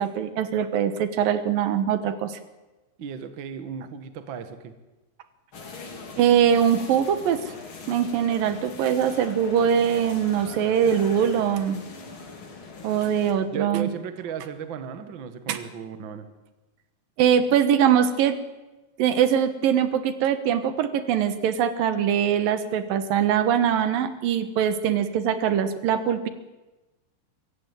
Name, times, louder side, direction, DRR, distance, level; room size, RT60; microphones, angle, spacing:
voice 1, 0.0-2.4 6.2-7.4 7.9-11.8 12.8-13.9 15.5-15.6 17.2-18.4 19.0-26.3, right 9 dB, 80° right, 11 dB, 3.0 m, -22 dB
voice 2, 3.0-4.7 13.5-16.3, right 7 dB, 45° right, 10 dB, 1.7 m, -35 dB
sound 1, 5.5-13.3, left 3 dB, 40° left, 3.1 m, -40 dB
24.5 x 15.5 x 9.1 m, 1.1 s
omnidirectional pair, 4.0 m